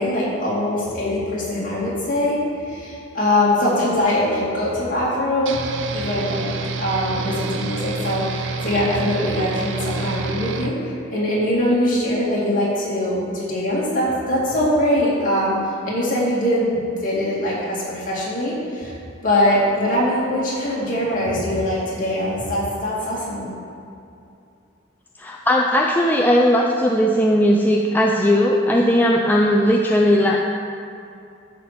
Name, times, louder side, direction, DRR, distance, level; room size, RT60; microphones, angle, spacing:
voice 1, 0.0-2.4 2.7-5.6 5.9-6.5 6.8-15.6 15.9-18.9 19.2-23.5, left 1 dB, 45° left, -7 dB, 2.5 m, -22 dB
sound 1, 5.5-10.7, right 4 dB, 75° right, 0.6 m, -28 dB
voice 2, 25.2-30.4, equal, 10° left, -1 dB, 0.4 m, -17 dB
10.5 x 4.2 x 6.9 m, 2.6 s
head